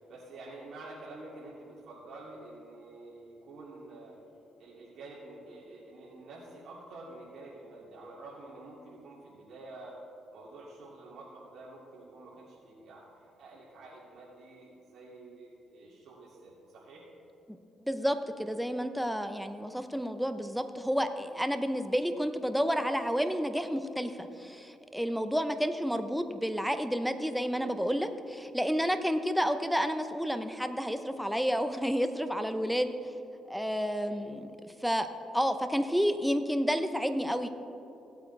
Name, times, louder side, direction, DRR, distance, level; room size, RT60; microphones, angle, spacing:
voice 1, 0.1-4.2 4.6-10.0 10.3-17.1 34.0-34.2, right 2 dB, 70° right, -8 dB, 2.6 m, -48 dB
voice 2, 17.8-32.9 33.5-35.1 35.3-37.5, equal, ahead, 8 dB, 0.7 m, -30 dB
18.0 x 8.4 x 3.3 m, 2.8 s
cardioid pair, 90°, 0 cm